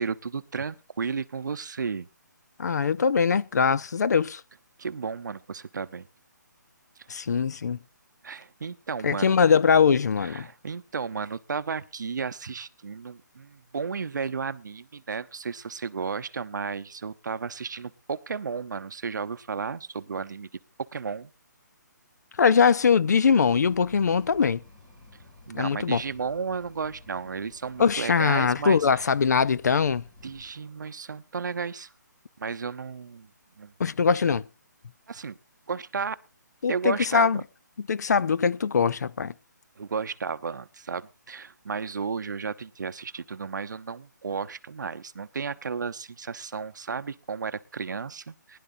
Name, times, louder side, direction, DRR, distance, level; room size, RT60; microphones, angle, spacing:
voice 1, 0.0-2.1 4.8-6.1 8.2-9.3 10.2-20.5 20.9-21.3 25.5-29.0 30.2-31.9 32.4-33.3 33.6-33.7 35.1-35.4 35.7-36.2 36.7-37.3 39.8-48.6, right 5 dB, 70° right, 0.8 m, -33 dB
voice 2, 2.6-4.4 7.1-7.8 9.0-10.5 22.4-24.6 25.5-26.0 27.8-30.0 33.8-34.4 36.6-37.4 37.9-39.3, left 6 dB, 60° left, 0.5 m, -22 dB
sound 1, 23.4-30.5, left 2 dB, 15° left, 3.3 m, -52 dB
20.0 x 11.0 x 2.6 m
hypercardioid pair, 170°, 10 cm